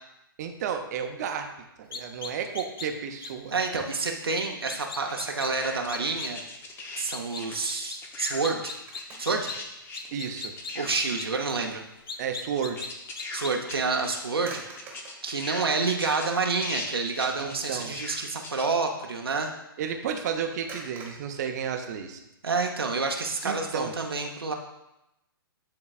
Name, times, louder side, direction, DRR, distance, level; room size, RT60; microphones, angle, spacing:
voice 1, 0.4-1.5 1.8-3.6 10.1-10.5 12.2-12.9 17.4-18.0 19.8-22.2 23.4-24.0, right 7 dB, 45° right, 5 dB, 0.8 m, -32 dB
sound 1, 1.9-2.9 3.2-3.3 4.7-5.5 5.9-6.3 7.1-9.6 9.9-11.3 12.1-12.9 13.2-13.5, left 5 dB, 75° left, 0.7 m, -37 dB
voice 2, 3.5-6.4 7.0-8.7 9.2-9.5 10.8-11.8 13.3-14.8 15.2-19.5 22.4-24.5, right 4 dB, 90° right, 1 dB, 0.8 m, -28 dB
sound 2, 5.1-7.0 7.3-11.7 12.0-12.1 12.6-14.2 14.5-14.6 14.8-18.6, left 3 dB, 20° left, 0.7 m, -40 dB
sound 3, 8.6-9.5 10.0-10.2 10.7-11.8 12.1-12.3 14.3-15.3 16.1-16.2 16.6-16.9 17.2-17.4 20.7-22.3, right 3 dB, 15° right, 1.4 m, -47 dB
11.0 x 3.9 x 2.4 m, 0.90 s
hypercardioid pair, 125°, 12 cm